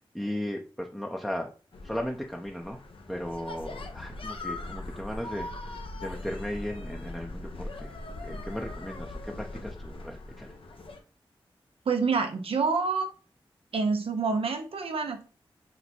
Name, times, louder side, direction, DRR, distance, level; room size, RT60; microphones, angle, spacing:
voice 1, 0.0-1.5 1.8-2.8 3.1-7.9 8.2-10.5, equal, ahead, 1 dB, 0.6 m, -36 dB
sound 1, 1.7-11.0, left 2 dB, 70° left, 0.8 m, -40 dB
voice 2, 11.9-13.1 13.7-15.2, right 4 dB, 75° right, 5 dB, 0.8 m, -27 dB
4.2 x 2.2 x 4.3 m, 0.35 s
cardioid pair, 40°, 10 cm